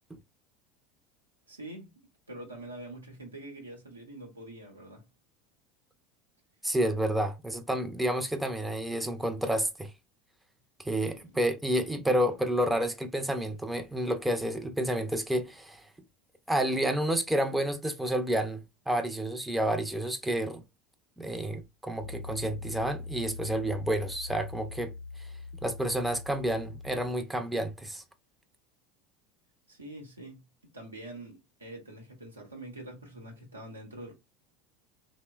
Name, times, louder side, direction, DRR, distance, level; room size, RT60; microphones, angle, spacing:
voice 1, 1.5-2.0 2.3-5.0 11.0-11.4 29.7-30.5 30.7-34.1, right 1 dB, 90° right, 0.8 m, -45 dB
voice 2, 6.6-9.9 10.8-15.8 16.5-20.6 21.2-24.9 25.6-28.0, right 1 dB, 5° right, 0.5 m, -30 dB
Piano, 22.0-27.1, left 3 dB, 70° right, 0.3 m, -42 dB
3.0 x 2.0 x 2.2 m
figure-of-eight pair, 75°, 0 cm